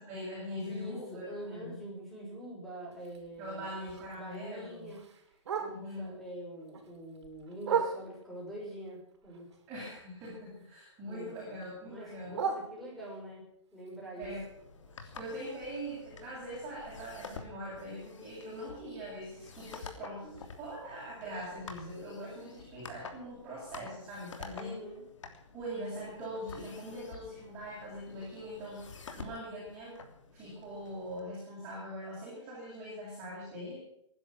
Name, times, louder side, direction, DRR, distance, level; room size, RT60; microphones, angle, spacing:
voice 1, 0.0-1.8 3.4-4.9 5.7-6.1 9.7-12.4 14.2-14.4 15.0-24.8 25.5-28.9 29.1-30.0 30.3-33.8, equal, 15° right, -6 dB, 7.9 m, -42 dB
voice 2, 0.7-3.7 4.1-5.1 5.6-9.5 11.1-11.3 11.8-13.4 13.7-14.3 24.6-25.0, right 1 dB, ahead, -4 dB, 5.4 m, -45 dB
Bark, 2.9-6.1 6.5-8.4 8.9-10.7 11.0-13.3 13.7-17.7 18.0-18.1 18.4-18.8 19.2-19.3 19.6-19.7 20.3-20.4, right 6 dB, 65° right, 4.1 m, -40 dB
sound 1, 14.2-31.2, left 5 dB, 80° left, 3.1 m, -50 dB
20.0 x 11.0 x 6.0 m, 0.74 s
hypercardioid pair, 170°, 16 cm